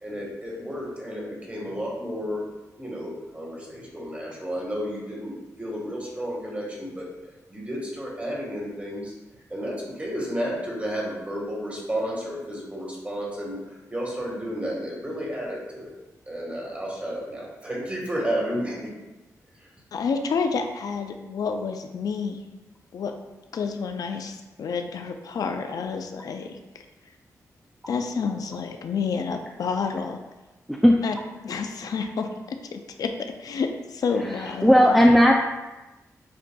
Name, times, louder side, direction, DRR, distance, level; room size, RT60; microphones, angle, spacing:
voice 1, 0.0-2.4 2.8-9.1 9.5-15.9 16.3-18.9, equal, 20° right, -4 dB, 1.5 m, -32 dB
voice 2, 19.9-22.4 22.9-23.1 23.5-26.8 27.9-30.2 31.0-31.1 31.4-35.0, left 5 dB, 75° left, 6 dB, 0.4 m, -29 dB
voice 3, 34.3-35.3, equal, ahead, 0 dB, 0.3 m, -16 dB
7.4 x 2.5 x 2.2 m, 1.1 s
cardioid pair, 75°, 6 cm